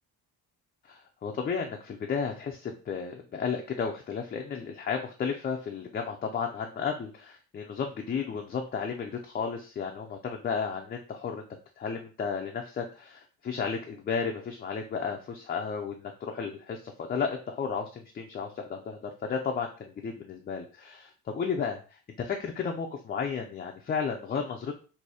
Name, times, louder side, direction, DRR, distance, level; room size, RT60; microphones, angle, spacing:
voice 1, 0.9-11.4 11.8-21.8 22.2-24.8, left 6 dB, 25° left, 2 dB, 0.4 m, -33 dB
4.1 x 2.6 x 4.7 m, 0.36 s
cardioid pair, 175°, 39 cm